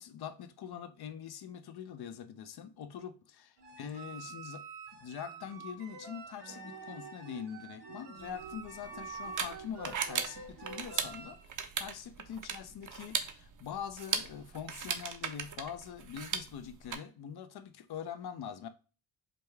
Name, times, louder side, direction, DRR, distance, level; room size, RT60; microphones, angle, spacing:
voice 1, 0.0-4.6 4.9-11.4 11.8-18.7, left 8 dB, 55° left, 0.6 m, -44 dB
sound 1, 3.6-11.4, right 4 dB, 60° right, 1.1 m, -47 dB
sound 2, 8.2-16.9, right 6 dB, 40° right, 0.7 m, -38 dB
5.2 x 2.2 x 3.2 m
cardioid pair, 80°, 47 cm